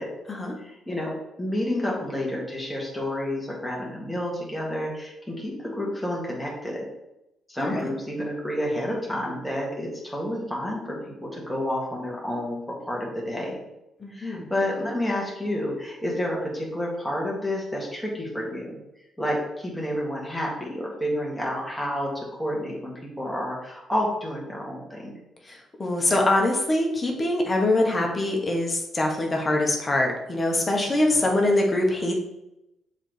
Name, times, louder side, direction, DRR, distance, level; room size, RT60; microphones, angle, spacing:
voice 1, 0.6-6.9 7.5-13.6 14.1-18.8 19.2-25.2 31.0-31.3, left 1 dB, ahead, -4 dB, 2.0 m, -30 dB
voice 2, 7.6-7.9 14.0-14.5 25.5-32.1, left 1 dB, 25° left, 0 dB, 1.3 m, -24 dB
7.2 x 4.0 x 3.4 m, 0.89 s
cardioid pair, 90°, 0 cm